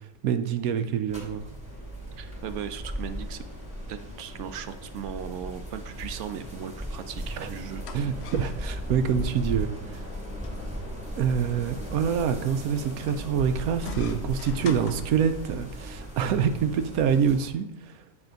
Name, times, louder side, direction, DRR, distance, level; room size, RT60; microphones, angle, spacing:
voice 1, 0.2-1.4 7.4-7.5 7.9-10.0 11.2-18.0, right 7 dB, 85° right, 9 dB, 1.1 m, -26 dB
sound 1, 1.1-17.5, equal, 5° right, 2.3 m, -37 dB
sound 2, 1.6-16.1, equal, 20° left, 0.6 m, -49 dB
voice 2, 2.2-3.4 3.9-7.9, right 8 dB, 65° right, 10 dB, 0.8 m, -37 dB
sound 3, 7.7-15.7, left 6 dB, 60° left, 0.8 m, -44 dB
9.1 x 3.5 x 5.1 m, 0.84 s
omnidirectional pair, 1.5 m